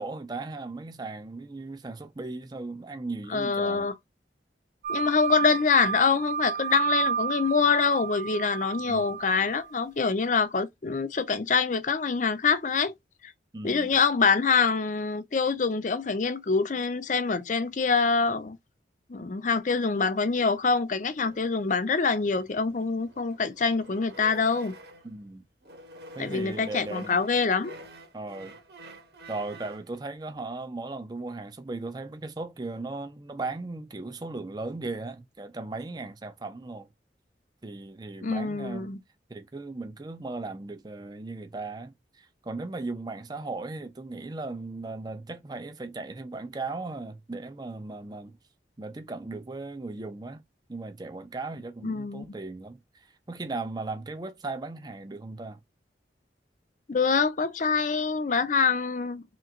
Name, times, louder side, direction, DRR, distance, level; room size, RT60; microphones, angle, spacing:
voice 1, 0.0-3.9 8.8-9.2 13.5-13.9 25.0-25.4 26.1-27.2 28.1-28.5 29.3-36.9 37.6-38.9 39.3-48.4 48.8-50.4 50.7-55.6, right 3 dB, 25° right, 0.5 m, -37 dB
voice 2, 3.3-3.9 4.9-12.9 13.2-13.3 13.6-18.6 19.1-24.7 26.2-27.7 38.2-39.0 51.8-52.4 56.9-59.2, left 5 dB, 45° left, 0.6 m, -25 dB
sound 1, 4.8-9.7, right 7 dB, 45° right, 0.8 m, -31 dB
sound 2, 21.0-25.2 25.6-29.9, right 1 dB, 65° right, 1.5 m, -49 dB
3.3 x 3.0 x 3.8 m
head